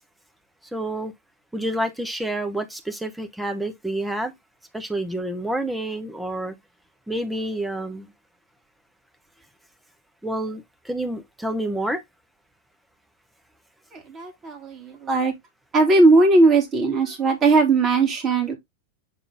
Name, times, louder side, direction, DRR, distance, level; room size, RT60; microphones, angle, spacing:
voice 1, 0.7-1.1 1.5-4.3 4.7-6.5 7.1-8.1 10.2-12.0, right 1 dB, 5° right, 1.2 m, -28 dB
voice 2, 13.9-15.3 15.7-18.6, right 3 dB, 30° right, 2.8 m, -18 dB
7.6 x 3.8 x 3.6 m
figure-of-eight pair, 90°, 0 cm